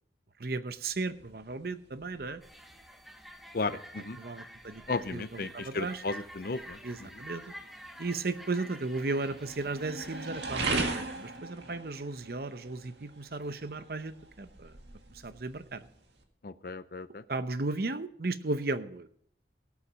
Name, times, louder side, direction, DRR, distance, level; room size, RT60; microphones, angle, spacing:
voice 1, 0.4-2.4 4.2-4.8 5.1-6.0 6.8-7.4 8.0-14.8 15.1-15.9 17.3-19.1, right 3 dB, 55° right, 11 dB, 0.8 m, -35 dB
sound 1, 0.7-16.2, right 3 dB, 80° right, 1.8 m, -41 dB
sound 2, 2.4-11.4, equal, ahead, 0.8 m, -49 dB
voice 2, 3.5-4.2 4.9-6.8 16.4-17.2, left 3 dB, 55° left, 14 dB, 0.6 m, -34 dB
17.5 x 7.2 x 5.1 m, 0.66 s
head